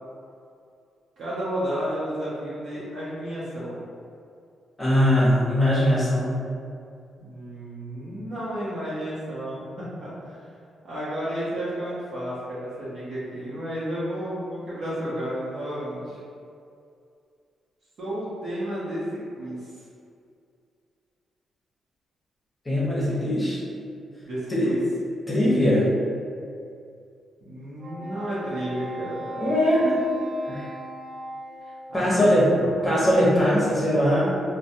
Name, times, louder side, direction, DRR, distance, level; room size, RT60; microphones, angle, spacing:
voice 1, 1.2-3.8 7.2-10.5 10.8-16.2 18.0-19.8 24.2-24.8 27.4-29.4 31.9-32.2, equal, 65° right, -11 dB, 0.8 m, -32 dB
voice 2, 4.8-6.4 22.6-23.6 24.5-24.7 25.3-25.9 29.4-30.0 30.4-30.7 31.9-32.4 32.8-34.4, equal, 20° left, -8 dB, 0.9 m, -21 dB
Wind instrument woodwind instrument, 27.8-32.4, right 1 dB, 45° right, 0.3 m, -38 dB
3.1 x 2.2 x 2.6 m, 2.4 s
cardioid pair, 100°, 0 cm